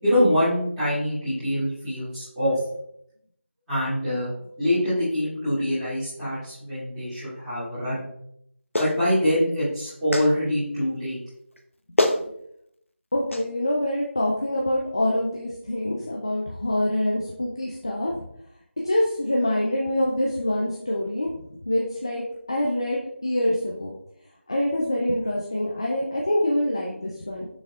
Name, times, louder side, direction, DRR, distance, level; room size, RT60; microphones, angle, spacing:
voice 1, 0.0-2.6 3.7-4.3 4.6-8.0 8.8-11.2, equal, 5° right, -19 dB, 2.4 m, -24 dB
Clapping, 8.7-9.0 10.1-10.3 11.6-11.7 12.0-12.2 13.3-13.4, left 1 dB, 75° left, 0.9 m, -23 dB
voice 2, 13.1-18.1 18.8-21.3 21.7-23.9 24.5-27.5, left 1 dB, 20° left, -2 dB, 0.5 m, -25 dB
6.4 x 6.2 x 2.4 m, 0.73 s
figure-of-eight pair, 170°, 7 cm